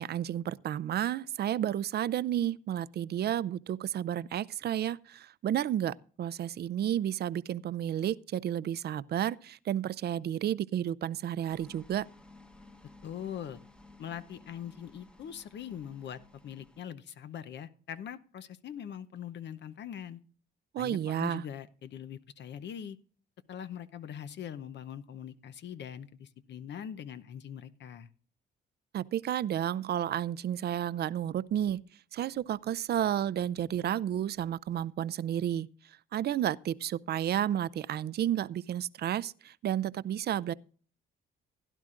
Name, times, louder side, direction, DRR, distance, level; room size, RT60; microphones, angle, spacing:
voice 1, 0.0-12.1 20.7-21.4 28.9-31.8 32.1-35.7 36.1-40.5, right 10 dB, 55° right, 0.5 m, -31 dB
sound 1, 11.5-16.8, left 2 dB, 5° left, 1.0 m, -56 dB
voice 2, 13.0-13.6 14.0-20.2 20.8-23.0 23.5-28.1, left 9 dB, 65° left, 0.8 m, -42 dB
16.5 x 11.0 x 2.5 m
cardioid pair, 90°, 20 cm